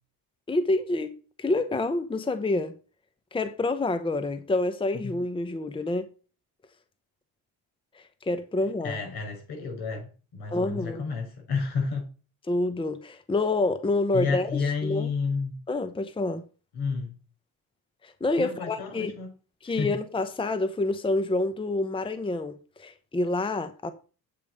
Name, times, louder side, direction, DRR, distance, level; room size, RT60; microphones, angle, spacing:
voice 1, 0.5-1.1 1.4-2.7 3.3-6.1 7.9-9.0 10.5-11.0 12.5-15.1 15.7-16.4 18.0-19.1 19.6-23.9, left 2 dB, 15° left, 0.8 m, -27 dB
voice 2, 8.8-12.1 14.1-15.6 16.7-17.1 18.4-19.3 19.6-19.9, left 5 dB, 80° left, 6.2 m, -31 dB
8.6 x 5.3 x 6.5 m
cardioid pair, 115°, 37 cm